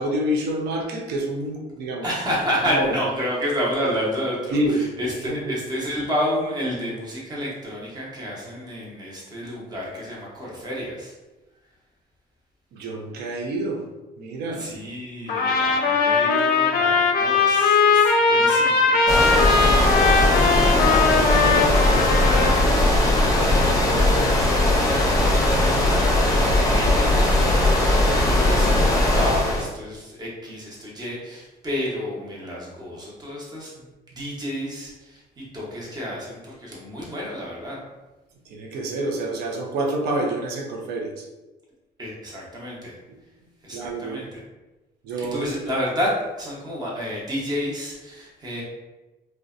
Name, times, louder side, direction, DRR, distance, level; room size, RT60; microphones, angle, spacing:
voice 1, 0.0-2.1 2.7-3.0 4.5-4.9 5.3-5.6 12.7-13.8 14.2-14.7 38.5-41.3 43.7-44.2 45.0-45.5, right 1 dB, 75° right, 1 dB, 0.5 m, -27 dB
voice 2, 2.0-11.1 14.6-20.4 20.7-37.8 42.0-43.0 43.6-44.4 45.2-48.6, equal, 25° right, -4 dB, 0.9 m, -31 dB
Trumpet, 15.3-22.7, left 4 dB, 60° left, 0.5 m, -19 dB
sound 1, 19.1-29.6, left 1 dB, 20° left, 0.6 m, -19 dB
2.6 x 2.1 x 2.4 m, 1.1 s
cardioid pair, 110°, 17 cm